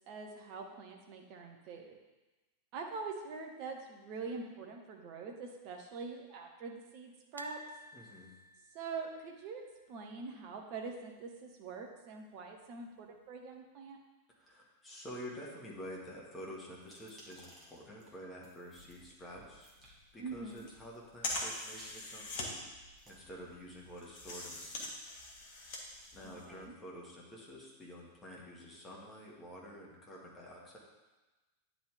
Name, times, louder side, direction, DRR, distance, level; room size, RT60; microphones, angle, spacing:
voice 1, 0.1-2.0 2.7-7.6 8.7-9.6 9.9-14.0 20.2-20.7 26.2-26.8, right 4 dB, 45° right, 2 dB, 1.1 m, -44 dB
sound 1, 7.4-10.4 10.7-10.9 11.1-11.2 12.5-13.0 13.5-13.6, right 1 dB, 85° right, 0.4 m, -52 dB
voice 2, 7.9-8.3 14.3-19.7 20.1-22.6 23.1-24.9 25.5-25.8 26.1-30.8, equal, 15° left, -4 dB, 1.9 m, -49 dB
sound 2, 16.8-19.1 19.6-19.9 20.5-21.1 21.6-23.1, right 1 dB, 15° right, 2.0 m, -59 dB
sound 3, 18.8-26.7, left 2 dB, 50° left, 1.3 m, -43 dB
9.8 x 3.9 x 3.5 m, 1.1 s
figure-of-eight pair, 90°, 0 cm